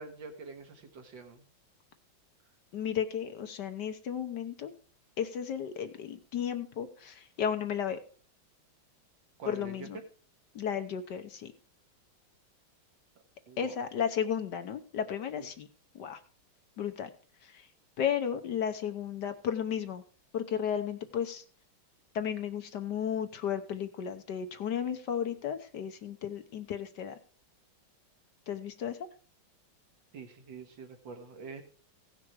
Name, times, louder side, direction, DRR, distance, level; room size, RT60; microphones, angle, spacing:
voice 1, 0.0-1.4 9.4-10.0 13.5-13.8 15.3-15.5 30.1-31.6, right 4 dB, 70° right, 6 dB, 2.0 m, -45 dB
voice 2, 2.7-4.7 5.2-8.0 9.5-10.0 10.5-11.5 13.6-15.7 16.0-16.2 16.8-17.1 18.0-20.0 20.3-21.4 22.1-27.2 28.5-29.0, left 8 dB, 65° left, 8 dB, 1.4 m, -34 dB
16.5 x 6.1 x 4.7 m, 0.42 s
omnidirectional pair, 2.2 m